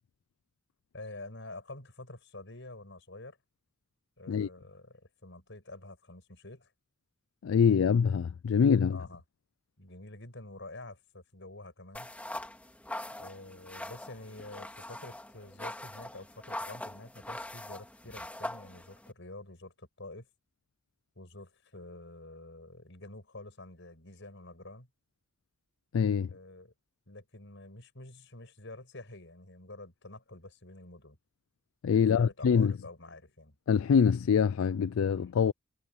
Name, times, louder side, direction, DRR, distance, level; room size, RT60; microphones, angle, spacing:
voice 1, 0.9-3.4 4.2-6.7 8.9-9.2 9.8-12.1 13.2-20.3 21.2-24.9 26.3-26.7 27.1-31.2 31.9-33.6, left 2 dB, 65° left, 7.4 m, -48 dB
voice 2, 7.4-9.0 25.9-26.3 31.8-32.7 33.7-35.5, left 6 dB, 85° left, 0.4 m, -25 dB
sound 1, 11.9-19.1, left 1 dB, 5° left, 2.3 m, -42 dB
head